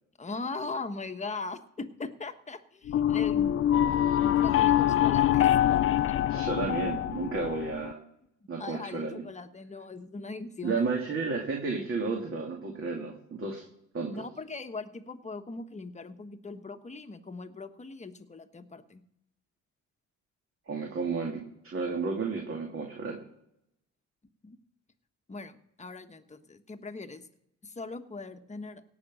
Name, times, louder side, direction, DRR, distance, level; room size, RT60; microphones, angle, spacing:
voice 1, 0.2-3.6 4.2-5.6 8.6-10.8 14.1-19.0 24.4-24.6 25.3-27.2 27.6-28.8, left 3 dB, 25° left, 7 dB, 1.2 m, -40 dB
sound 1, 2.9-7.9, left 11 dB, 45° left, 0.4 m, -25 dB
voice 2, 6.3-8.0 8.5-9.1 10.6-13.6 13.9-14.2 20.7-23.2, right 4 dB, 45° right, 0 dB, 2.5 m, -32 dB
17.5 x 6.0 x 7.5 m, 0.78 s
cardioid pair, 90°, 30 cm